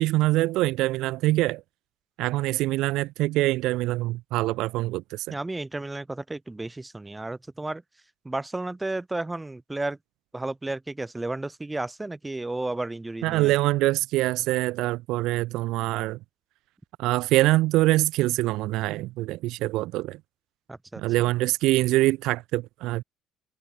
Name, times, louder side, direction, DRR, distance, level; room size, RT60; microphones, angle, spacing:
voice 1, 0.0-1.6 2.2-5.3 13.2-16.2 17.0-20.2 21.0-23.0, right 18 dB, 75° right, 0.4 m, -24 dB
voice 2, 5.3-7.8 8.2-10.0 10.3-13.5 20.7-21.0, right 2 dB, 10° right, 2.5 m, -32 dB
cardioid pair, 135°, 0 cm